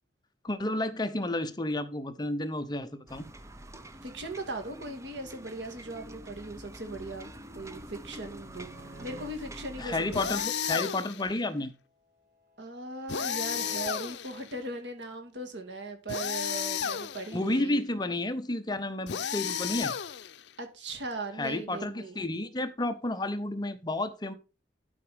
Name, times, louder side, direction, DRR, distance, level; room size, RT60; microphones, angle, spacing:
voice 1, 0.4-3.3 9.8-11.7 17.3-19.9 21.4-24.3, left 2 dB, 25° left, 0.8 m, -31 dB
sound 1, 3.1-10.5, right 1 dB, 15° right, 0.7 m, -46 dB
voice 2, 4.0-8.7 9.0-10.3 12.6-17.8 20.6-22.2, right 2 dB, 80° right, 2.3 m, -39 dB
sound 2, 7.5-9.3 12.0-13.9 17.3-17.6, equal, 60° right, 2.7 m, -50 dB
sound 3, 10.1-11.3 13.1-14.5 16.1-17.4 19.1-20.5, left 8 dB, 70° left, 0.6 m, -33 dB
12.0 x 4.8 x 5.1 m
head